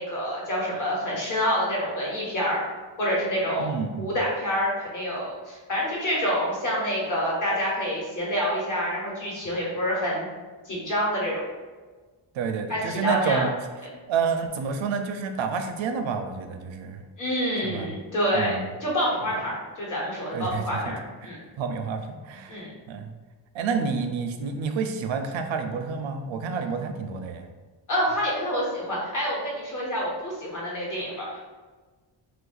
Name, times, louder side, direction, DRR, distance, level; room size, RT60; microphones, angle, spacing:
voice 1, 0.0-2.6 3.0-3.7 4.0-10.3 10.6-11.4 12.7-13.5 17.2-21.4 22.5-22.7 27.9-31.4, equal, 45° left, -5 dB, 1.1 m, -27 dB
voice 2, 3.6-4.1 12.3-13.5 14.1-17.0 17.6-17.9 18.3-18.7 20.3-20.9 21.6-23.1 23.5-27.5, right 5 dB, 80° right, 6 dB, 0.5 m, -29 dB
3.2 x 2.5 x 3.9 m, 1.4 s
wide cardioid pair, 180°, 45 cm